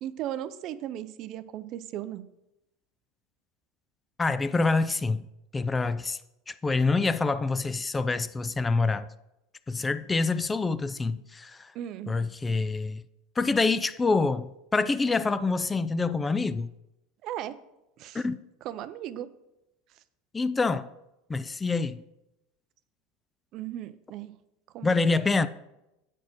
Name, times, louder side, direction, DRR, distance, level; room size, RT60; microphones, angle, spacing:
voice 1, 0.0-2.3 11.7-12.1 17.2-17.6 18.0-18.2 18.6-19.3 23.5-24.3 24.7-24.9, right 12 dB, 50° right, 0.5 m, -36 dB
voice 2, 4.2-5.2 5.5-6.2 6.5-9.1 9.7-11.7 12.1-13.0 13.4-16.7 18.1-18.4 20.3-20.9 21.3-22.0 24.8-25.5, left 3 dB, 15° left, 0.3 m, -26 dB
8.0 x 4.3 x 6.0 m
supercardioid pair, 110°, 0 cm